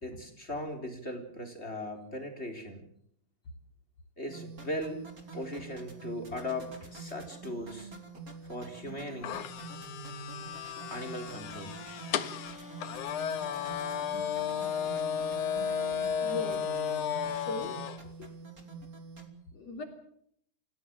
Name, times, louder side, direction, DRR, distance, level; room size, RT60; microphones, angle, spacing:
voice 1, 0.0-2.8 4.2-5.0 5.3-7.9 8.4-9.4 10.9-11.8, left 1 dB, 15° left, 5 dB, 3.4 m, -38 dB
sound 1, 4.3-19.3, right 3 dB, 20° right, 3.3 m, -45 dB
sound 2, 9.2-18.0, left 8 dB, 65° left, 2.0 m, -34 dB
voice 2, 16.1-17.0 17.4-17.8 18.2-18.3 19.5-19.8, left 2 dB, 40° left, 3 dB, 4.1 m, -39 dB
28.5 x 17.5 x 7.5 m, 0.67 s
omnidirectional pair, 5.2 m